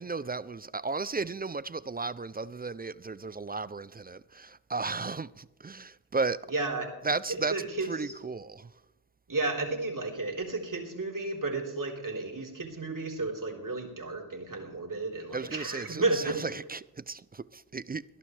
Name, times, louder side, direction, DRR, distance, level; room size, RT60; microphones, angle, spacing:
voice 1, 0.0-6.5 7.0-7.6 7.9-8.8 15.3-18.0, right 4 dB, 25° right, 0.4 m, -34 dB
voice 2, 6.5-6.9 7.3-8.1 9.3-16.4, right 3 dB, 45° right, 3.8 m, -32 dB
21.5 x 11.5 x 3.3 m
cardioid pair, 50°, 43 cm